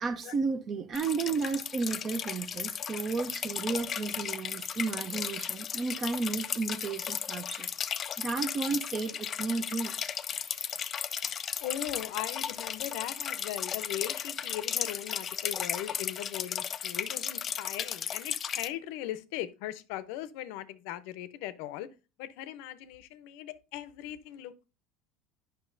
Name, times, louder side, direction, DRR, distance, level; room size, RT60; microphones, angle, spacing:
voice 1, 0.0-7.7 8.2-9.9, right 4 dB, 30° right, 0.7 m, -33 dB
sound 1, 0.9-18.7, left 8 dB, 35° left, 0.4 m, -35 dB
voice 2, 11.6-21.9 22.2-24.5, left 13 dB, 75° left, 0.6 m, -39 dB
9.1 x 5.6 x 2.6 m
cardioid pair, 135°, 0 cm